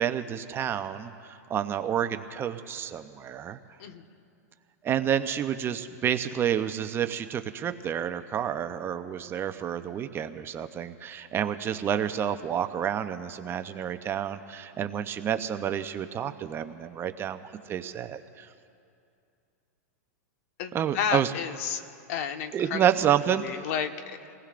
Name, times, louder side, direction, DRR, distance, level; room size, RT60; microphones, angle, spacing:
voice 1, 0.0-3.6 4.8-17.4 17.7-18.5 20.7-21.3 22.5-23.5, right 9 dB, 25° right, 9 dB, 0.7 m, -29 dB
voice 2, 20.6-21.8 22.1-22.9 23.2-24.3, left 8 dB, 55° left, 6 dB, 1.3 m, -32 dB
29.5 x 19.0 x 2.6 m, 2.5 s
hypercardioid pair, 125°, 9 cm